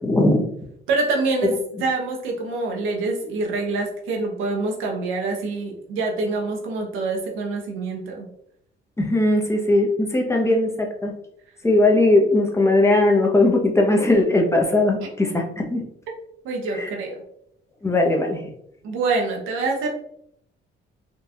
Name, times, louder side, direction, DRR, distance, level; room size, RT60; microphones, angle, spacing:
voice 1, 0.0-0.4 9.0-11.1 11.6-15.8 16.7-16.9 17.8-18.4, left 2 dB, 15° left, 1 dB, 0.7 m, -19 dB
voice 2, 0.9-1.5 1.8-8.3 16.4-17.1 18.8-19.9, right 3 dB, 85° right, 0 dB, 0.8 m, -25 dB
3.8 x 2.4 x 2.7 m, 0.74 s
cardioid pair, 90°, 20 cm